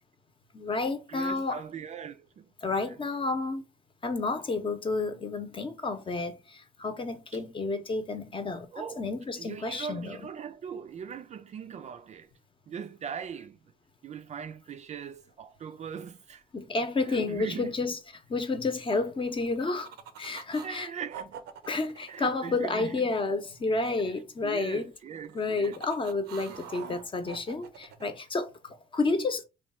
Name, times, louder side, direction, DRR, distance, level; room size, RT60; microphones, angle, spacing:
voice 1, 0.5-1.6 2.6-3.6 4.0-10.2 16.5-18.0 18.3-19.9 20.2-20.9 21.7-24.9 25.3-29.4, left 3 dB, 30° left, 0.8 m, -30 dB
voice 2, 1.1-2.5 2.8-3.0 8.7-9.0 9.4-12.3 12.7-13.6 14.0-16.4 17.1-17.7 20.6-21.4 22.1-22.9 24.4-25.8 26.5-26.6 26.8-27.1, right 7 dB, 45° right, 0.4 m, -40 dB
sound 1, 19.2-20.7 21.1-23.3 25.1-28.1, right 8 dB, 85° right, 0.6 m, -46 dB
3.0 x 2.3 x 4.1 m
cardioid pair, 100°, 17 cm